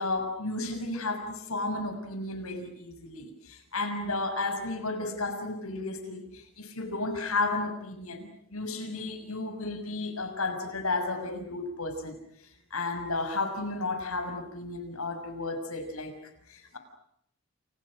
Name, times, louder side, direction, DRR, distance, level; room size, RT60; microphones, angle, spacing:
voice 1, 0.0-12.2 12.7-16.2 16.5-16.8, left 2 dB, 80° left, 7 dB, 6.5 m, -33 dB
30.0 x 29.0 x 6.5 m, 0.75 s
head